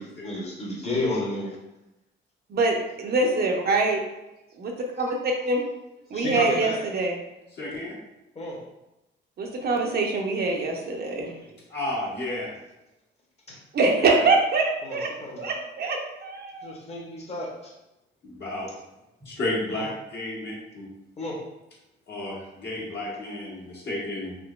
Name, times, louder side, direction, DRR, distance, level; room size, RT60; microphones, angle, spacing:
voice 1, 0.0-1.5 5.0-5.1 6.1-6.9 8.3-8.6 13.5-13.6 14.8-15.5 16.6-17.7 19.7-19.8 21.2-21.4, left 1 dB, 30° left, -2 dB, 1.0 m, -32 dB
voice 2, 2.5-4.0 4.6-5.6 6.1-7.2 9.4-11.3 13.7-15.1 15.4-16.7, right 3 dB, 50° right, 1 dB, 0.6 m, -24 dB
voice 3, 7.5-7.9 11.7-12.5 14.0-14.2 18.2-18.7 19.2-20.9 22.1-24.4, left 1 dB, 55° left, -5 dB, 1.5 m, -32 dB
3.7 x 2.9 x 2.3 m, 0.94 s
cardioid pair, 90°, 20 cm